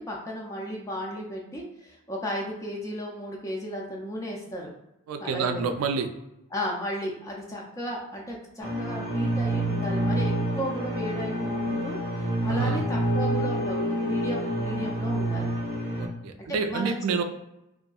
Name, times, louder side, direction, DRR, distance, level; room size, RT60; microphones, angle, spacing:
voice 1, 0.0-4.7 5.2-5.6 6.5-15.5 16.4-17.2, equal, 15° left, -2 dB, 0.4 m, -34 dB
voice 2, 5.1-6.1 12.5-12.8 16.0-17.2, right 5 dB, 75° right, 7 dB, 0.3 m, -28 dB
sound 1, 8.6-16.1, right 1 dB, 60° left, 0.9 m, -28 dB
2.7 x 2.4 x 2.3 m, 0.89 s
head